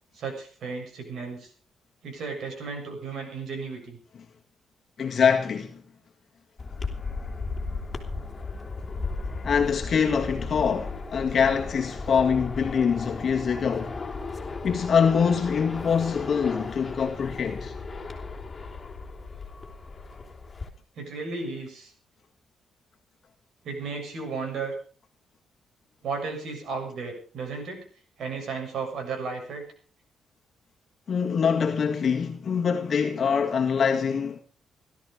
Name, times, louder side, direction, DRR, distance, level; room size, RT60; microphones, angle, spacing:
voice 1, 0.1-1.5 2.0-4.0 21.0-21.9 23.6-24.7 26.0-27.8 28.2-29.6, right 4 dB, 65° right, 7.1 m, -34 dB
voice 2, 5.0-5.8 9.4-14.0 14.6-17.7 31.1-34.4, left 6 dB, 45° left, 1.8 m, -24 dB
sound 1, 6.6-20.7, left 4 dB, 20° left, 3.6 m, -36 dB
17.0 x 13.0 x 5.2 m
cardioid pair, 120°, 0 cm